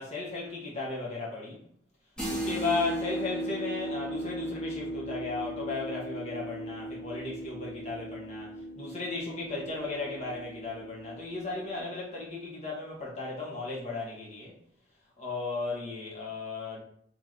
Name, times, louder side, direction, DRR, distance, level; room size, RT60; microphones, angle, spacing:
voice 1, 0.0-1.6 2.3-14.5 15.2-16.8, left 3 dB, 40° left, -4 dB, 1.3 m, -35 dB
sound 1, 2.2-11.8, right 1 dB, 5° left, 0.9 m, -37 dB
3.1 x 3.0 x 3.9 m, 0.64 s
head